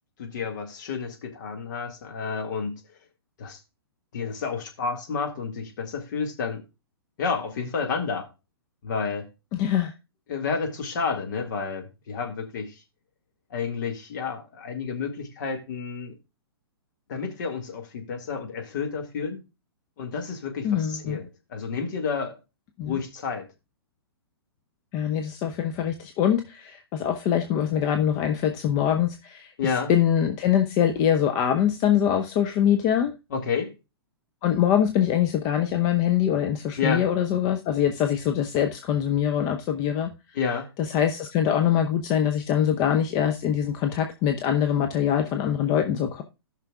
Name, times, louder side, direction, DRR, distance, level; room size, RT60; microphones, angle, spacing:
voice 1, 0.2-2.8 3.4-3.6 4.1-6.6 7.2-8.3 8.8-9.3 10.3-12.8 13.5-16.1 17.1-19.4 20.0-22.3 22.8-23.5 29.6-29.9 33.3-33.7 36.8-37.0 40.3-40.7, left 5 dB, 50° left, 2.0 m, -30 dB
voice 2, 9.5-9.9 20.6-21.2 22.8-23.0 24.9-33.1 34.4-40.1 40.8-46.2, left 9 dB, 30° left, 0.7 m, -23 dB
17.5 x 5.9 x 2.4 m
figure-of-eight pair, 115°, 13 cm